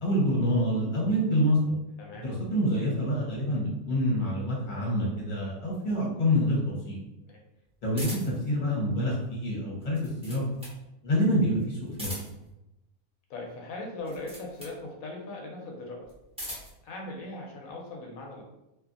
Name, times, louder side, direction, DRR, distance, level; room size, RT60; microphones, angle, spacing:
voice 1, 0.0-1.6 2.1-7.0 7.8-10.4 11.0-12.1, equal, 40° left, -5 dB, 1.0 m, -27 dB
voice 2, 2.0-2.3 7.3-7.4 13.3-16.1 16.8-18.4, left 2 dB, 85° left, 0 dB, 1.1 m, -39 dB
sound 1, 7.9-8.5 9.8-10.8 11.9-12.5 14.0-14.8 16.0-16.8, equal, 5° right, 0.9 m, -40 dB
2.7 x 2.6 x 2.4 m, 0.91 s
omnidirectional pair, 1.4 m